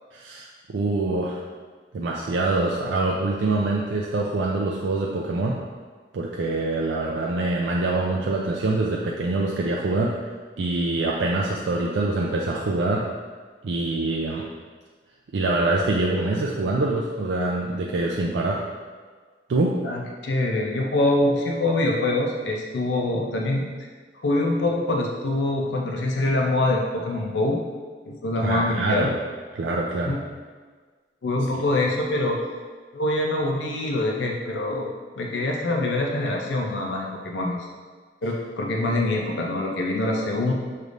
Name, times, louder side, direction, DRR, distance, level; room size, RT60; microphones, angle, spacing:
voice 1, 0.1-1.4 1.9-5.6 6.1-10.3 10.6-13.1 13.6-14.4 15.3-18.6 19.5-19.8 28.4-29.2 29.5-30.2, right 2 dB, 80° right, -2 dB, 0.4 m, -25 dB
voice 2, 19.8-23.7 24.2-27.6 28.1-29.1 30.1-30.2 31.2-32.4 32.9-37.6 38.2-40.5, left 2 dB, 75° left, 0 dB, 0.5 m, -24 dB
6.5 x 3.3 x 2.5 m, 1.5 s
head